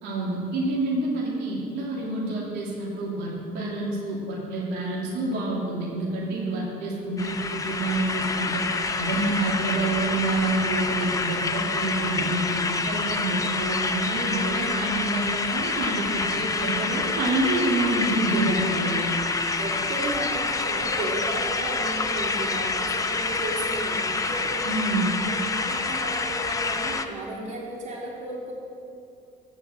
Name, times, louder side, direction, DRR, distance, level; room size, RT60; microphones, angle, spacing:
voice 1, 0.0-8.6 9.0-19.1 19.6-19.7 24.6-25.1, right 2 dB, 90° right, -4 dB, 2.8 m, -27 dB
sound 1, 7.2-27.0, left 3 dB, 20° left, 0.7 m, -27 dB
voice 2, 19.6-24.7 25.6-28.5, right 2 dB, 45° right, -4 dB, 3.8 m, -34 dB
15.5 x 5.8 x 7.9 m, 2.5 s
cardioid pair, 110°, 17 cm